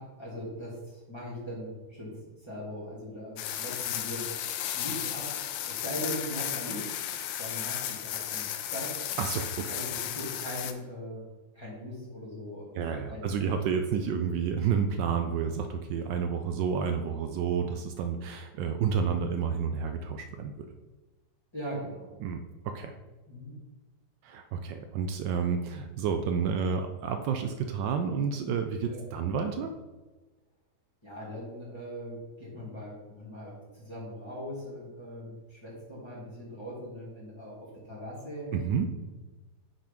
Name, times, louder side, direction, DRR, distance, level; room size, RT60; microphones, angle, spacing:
voice 1, 0.0-4.3 4.7-6.9 7.4-9.0 9.7-11.3 11.6-13.5 16.0-16.2 21.5-22.2 23.3-23.6 28.9-29.0 31.0-38.5, equal, 15° left, -7 dB, 2.0 m, -40 dB
sound 1, 3.4-10.7, left 11 dB, 80° left, 1.3 m, -34 dB
voice 2, 9.2-9.7 12.7-20.7 22.2-22.9 24.2-29.7 38.5-38.9, right 6 dB, 75° right, 6 dB, 1.2 m, -30 dB
6.1 x 4.3 x 5.0 m, 1.2 s
omnidirectional pair, 2.1 m